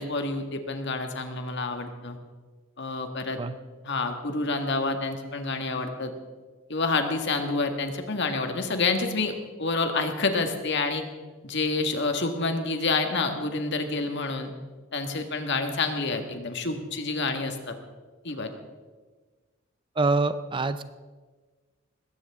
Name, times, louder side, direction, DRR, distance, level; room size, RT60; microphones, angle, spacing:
voice 1, 0.0-2.2 2.8-3.4 3.8-6.1 6.7-11.0 11.4-14.5 14.9-17.7 18.2-18.5, left 3 dB, 55° left, 5 dB, 1.7 m, -28 dB
voice 2, 20.0-20.8, right 3 dB, 25° right, 12 dB, 0.5 m, -25 dB
20.5 x 16.5 x 3.7 m, 1.4 s
head